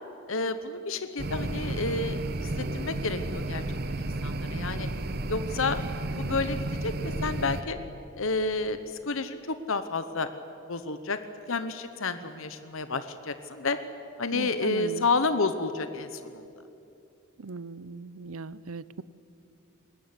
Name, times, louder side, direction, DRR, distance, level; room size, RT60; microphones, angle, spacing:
voice 1, 0.3-4.9 5.3-5.8 6.2-7.8 8.2-8.8 9.1-10.3 10.7-11.2 11.5-13.8 14.2-16.5, left 3 dB, 65° left, 11 dB, 1.0 m, -30 dB
Oustide Night, 1.2-7.6, right 2 dB, 45° right, 1.1 m, -32 dB
voice 2, 14.3-15.1 17.4-19.0, right 4 dB, 75° right, 18 dB, 0.7 m, -38 dB
21.0 x 19.5 x 9.8 m, 2.7 s
head